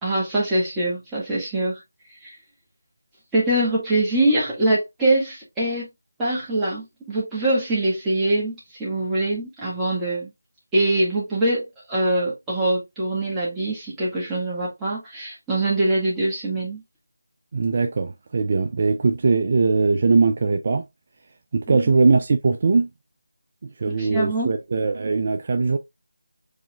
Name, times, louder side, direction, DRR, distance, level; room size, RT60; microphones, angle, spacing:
voice 1, 0.0-1.8 2.2-2.4 3.3-5.9 6.2-10.3 10.7-16.8 21.7-22.0 23.9-24.6, right 1 dB, 5° right, 1.9 m, -23 dB
voice 2, 17.5-20.8 21.5-22.9 23.8-25.8, right 4 dB, 40° right, 0.5 m, -20 dB
4.9 x 4.1 x 2.4 m
figure-of-eight pair, 165°, 0 cm